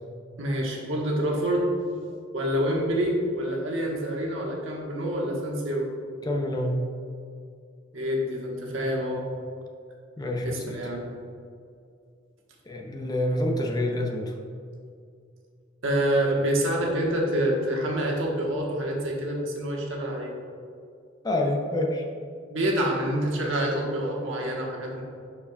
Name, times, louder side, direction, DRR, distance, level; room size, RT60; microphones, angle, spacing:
voice 1, 0.4-1.7 2.3-5.9 7.9-9.2 10.4-11.0 15.8-20.3 22.5-25.0, right 1 dB, 80° right, -2 dB, 1.3 m, -27 dB
voice 2, 6.2-6.8 10.2-10.8 12.7-14.3 21.2-22.0, left 1 dB, 20° left, 1 dB, 0.6 m, -27 dB
10.5 x 4.8 x 2.3 m, 2.3 s
head